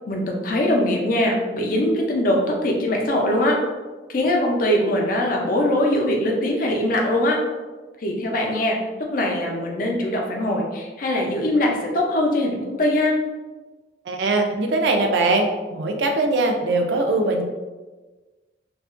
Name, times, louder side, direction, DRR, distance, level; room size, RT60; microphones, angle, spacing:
voice 1, 0.1-3.6 4.1-7.4 8.0-8.8 9.1-13.1, left 1 dB, 50° left, 0 dB, 0.5 m, -22 dB
voice 2, 14.1-17.4, right 2 dB, 80° right, 4 dB, 0.4 m, -21 dB
2.8 x 2.4 x 2.4 m, 1.3 s
head